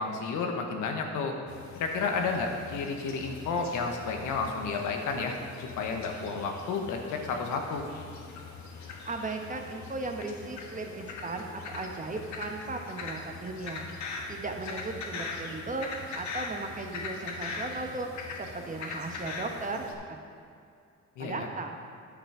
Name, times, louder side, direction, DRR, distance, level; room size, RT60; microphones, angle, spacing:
voice 1, 0.0-1.4 1.7-7.8 21.2-21.5, left 4 dB, 85° left, 3 dB, 1.2 m, -31 dB
sound 1, 1.5-19.9, left 3 dB, 70° left, 1.3 m, -41 dB
voice 2, 9.0-20.2 21.2-21.8, right 3 dB, 25° right, 3 dB, 1.0 m, -37 dB
9.9 x 6.2 x 4.8 m, 2.5 s
cardioid pair, 90°, 30 cm